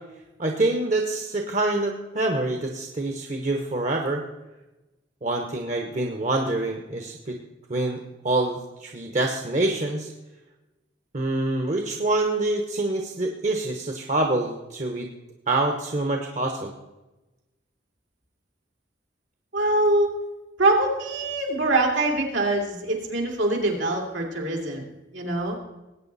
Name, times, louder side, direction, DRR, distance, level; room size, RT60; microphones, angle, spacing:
voice 1, 0.4-4.2 5.2-7.4 7.7-10.1 11.1-15.1 15.5-16.7, right 2 dB, 40° right, 3 dB, 1.0 m, -26 dB
voice 2, 19.5-20.1 20.6-24.8 25.1-25.6, right 2 dB, 80° right, 1 dB, 3.0 m, -23 dB
19.5 x 9.0 x 4.1 m, 1.0 s
head